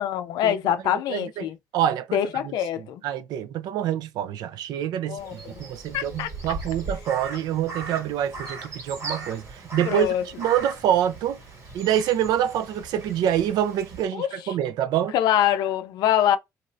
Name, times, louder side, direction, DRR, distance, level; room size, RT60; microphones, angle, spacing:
voice 1, 0.0-1.6 2.1-3.0 5.1-5.4 5.9-6.3 9.9-10.2 14.1-14.3 15.1-16.4, left 11 dB, 85° left, 0.4 m, -24 dB
voice 2, 0.8-11.4 11.7-15.1, right 10 dB, 85° right, 0.4 m, -26 dB
Crow, 5.2-14.1, right 3 dB, 50° right, 1.3 m, -38 dB
2.6 x 2.4 x 3.1 m
cardioid pair, 130°, 7 cm